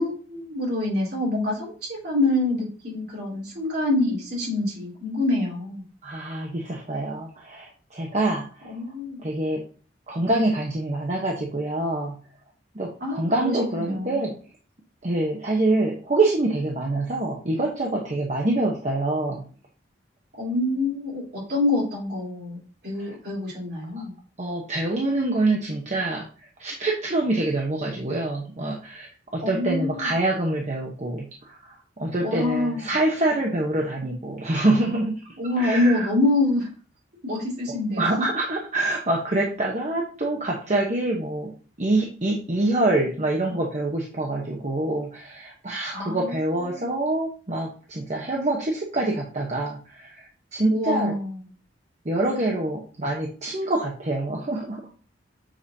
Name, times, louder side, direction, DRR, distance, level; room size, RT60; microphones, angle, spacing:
voice 1, 0.0-5.8 8.7-9.2 13.0-14.2 20.4-22.6 22.8-24.1 29.4-30.1 32.2-32.9 35.4-36.7 37.2-38.2 45.9-46.3 46.7-46.9 50.7-51.4, left 2 dB, 60° right, -4 dB, 3.5 m, -26 dB
voice 2, 6.0-8.7 9.2-9.6 10.1-12.2 12.7-14.3 15.0-19.4 23.0-23.1 24.4-26.2 26.6-31.7 32.0-35.2 35.6-36.1 38.0-41.5 41.8-50.3 50.5-51.1 52.0-54.9, right 2 dB, 40° right, -1 dB, 1.0 m, -25 dB
7.6 x 5.0 x 2.8 m, 0.39 s
head